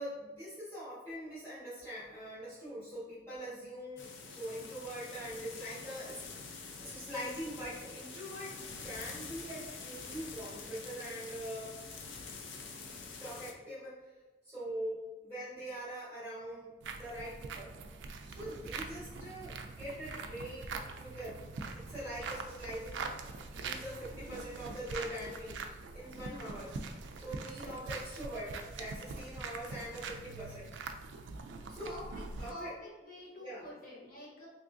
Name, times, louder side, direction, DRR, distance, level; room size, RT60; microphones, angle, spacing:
voice 1, 0.0-8.6 8.8-11.7 13.2-14.1 14.4-17.7 18.2-21.4 21.7-23.1 23.5-26.7 27.2-30.8 31.7-32.0 32.4-32.8 33.3-33.7, equal, 15° left, -14 dB, 1.4 m, -43 dB
sound 1, 4.0-13.5, left 4 dB, 85° left, 0.5 m, -46 dB
sound 2, 16.8-32.5, right 4 dB, 80° right, 0.3 m, -43 dB
voice 2, 32.5-34.5, left 1 dB, 50° left, -4 dB, 1.0 m, -47 dB
3.5 x 2.9 x 2.6 m, 1.2 s
head